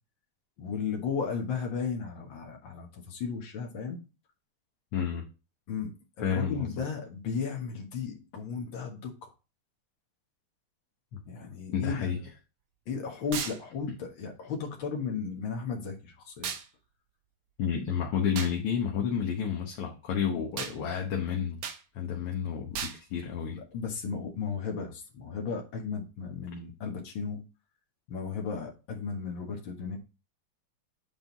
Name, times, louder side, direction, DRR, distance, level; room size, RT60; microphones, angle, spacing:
voice 1, 0.6-4.0 5.7-5.9 6.2-9.3 11.3-12.1 12.9-16.5 23.5-27.4 28.1-30.0, left 5 dB, 65° left, 2.2 m, -35 dB
voice 2, 4.9-5.3 6.2-6.9 11.7-12.2 13.9-14.0 17.6-21.6 22.0-23.6 26.6-26.7, left 7 dB, 85° left, 2.0 m, -31 dB
sound 1, 13.3-13.6 16.4-16.7 18.4-18.6 20.6-20.8 21.6-21.8 22.7-23.0, right 7 dB, 70° right, 1.6 m, -35 dB
8.9 x 4.0 x 3.9 m
omnidirectional pair, 2.3 m